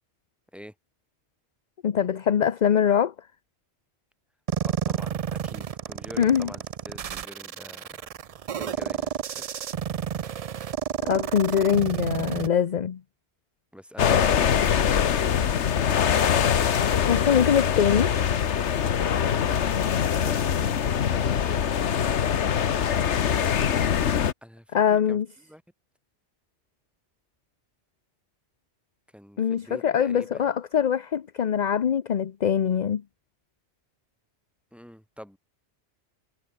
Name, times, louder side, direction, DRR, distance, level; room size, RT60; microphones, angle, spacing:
voice 1, 1.8-3.1 6.2-6.5 11.0-13.0 17.1-18.2 24.7-25.3 29.4-33.0, left 8 dB, 45° left, 0.7 m, -23 dB
sound 1, 4.5-12.5, right 8 dB, 55° right, 0.4 m, -31 dB
voice 2, 4.7-8.0 8.5-9.5 13.7-14.4 24.4-25.2 25.5-25.6 29.1-30.5 34.7-35.4, equal, ahead, 2.8 m, -45 dB
sound 2, 14.0-24.3, left 8 dB, 80° left, 1.3 m, -23 dB
omnidirectional pair, 1.2 m